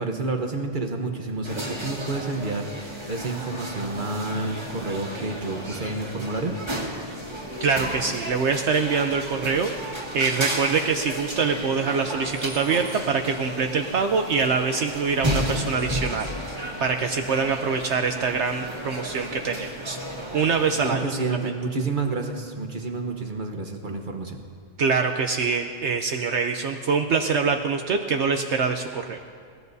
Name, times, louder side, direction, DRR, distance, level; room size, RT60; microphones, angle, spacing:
voice 1, 0.0-6.5 20.8-24.4, right 3 dB, 40° right, 4 dB, 1.1 m, -29 dB
sound 1, 1.4-20.9, right 1 dB, 20° right, 2.0 m, -33 dB
voice 2, 7.6-16.3 16.8-20.0 20.3-21.0 21.4-21.5 24.8-29.2, right 5 dB, 65° right, 5 dB, 0.9 m, -24 dB
21.5 x 17.5 x 2.7 m, 2.1 s
omnidirectional pair, 1.3 m